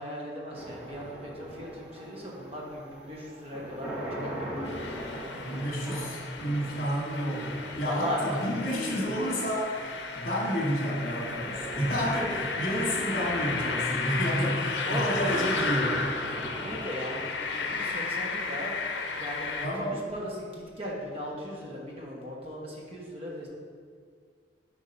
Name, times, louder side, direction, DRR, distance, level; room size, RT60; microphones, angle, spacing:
voice 1, 0.0-4.7 7.8-9.2 14.8-15.2 16.4-18.7 19.2-23.5, equal, 30° right, -3 dB, 1.0 m, -37 dB
sound 1, 0.5-19.6, equal, 5° right, 0.9 m, -41 dB
sound 2, 4.6-19.7, left 4 dB, 75° left, 0.6 m, -34 dB
voice 2, 5.4-16.1 19.6-20.0, equal, 50° left, -2 dB, 1.3 m, -30 dB
5.3 x 3.5 x 5.3 m, 2.1 s
head